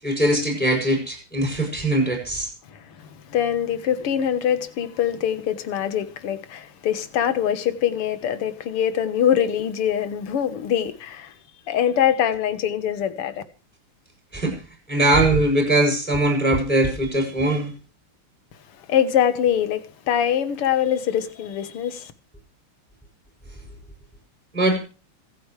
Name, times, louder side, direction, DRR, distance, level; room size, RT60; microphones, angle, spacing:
voice 1, 0.0-2.5 14.3-14.6 14.9-17.7 24.5-24.8, right 1 dB, 5° left, 7.5 m, -21 dB
voice 2, 2.7-11.3 11.7-13.4 18.9-22.1, left 9 dB, 85° left, 2.3 m, -23 dB
26.0 x 9.6 x 3.3 m
omnidirectional pair, 2.4 m